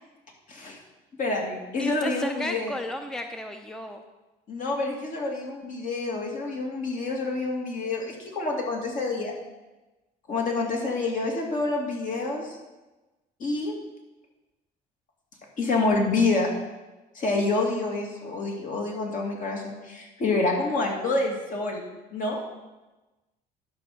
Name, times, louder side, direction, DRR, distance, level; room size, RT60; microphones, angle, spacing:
voice 1, 0.5-0.8 1.2-2.8 4.5-9.3 10.3-12.6 13.4-13.7 15.6-16.5 17.1-21.8 22.1-22.4, left 3 dB, 50° left, 0 dB, 2.6 m, -27 dB
voice 2, 1.8-4.0, equal, 5° left, 6 dB, 0.6 m, -34 dB
11.0 x 5.5 x 6.4 m, 1.1 s
cardioid pair, 110°, 17 cm